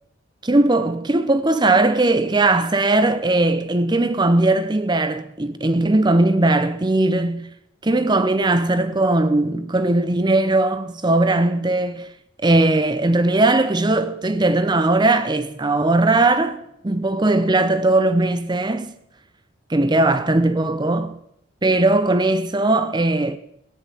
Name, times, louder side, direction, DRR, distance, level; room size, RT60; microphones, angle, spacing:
voice 1, 0.4-7.5 7.8-12.1 12.4-18.9 19.7-21.1 21.6-23.4, right 2 dB, 20° right, 0.6 m, -19 dB
14.5 x 10.5 x 7.5 m
head